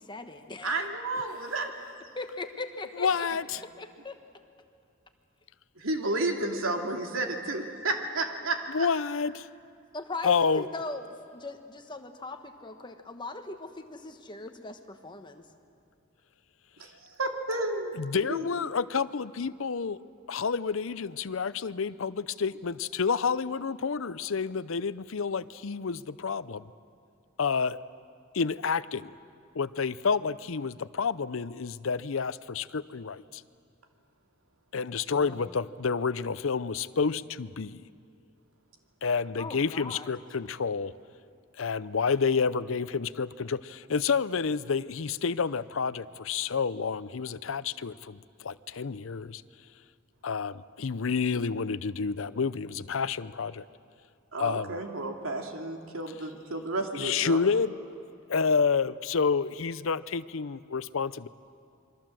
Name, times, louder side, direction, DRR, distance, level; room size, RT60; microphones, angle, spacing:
voice 1, 0.0-0.9 2.2-3.3 3.8-4.2 9.9-11.1 11.3-15.4 35.1-35.5 39.4-40.1, left 3 dB, 20° left, 6 dB, 1.3 m, -39 dB
voice 2, 0.6-1.7 5.8-8.9 16.8-18.0 18.3-18.7 54.3-57.4, right 2 dB, 85° right, 3 dB, 2.6 m, -32 dB
voice 3, 3.0-3.6 8.7-9.5 10.2-10.6 18.0-20.0 20.3-26.6 27.4-27.8 28.3-29.1 29.5-33.4 34.7-37.8 39.0-40.9 41.6-49.4 50.2-53.6 54.4-54.8 57.0-57.7 58.3-61.3, left 5 dB, 75° left, 16 dB, 0.6 m, -29 dB
28.0 x 23.0 x 7.7 m, 2.4 s
head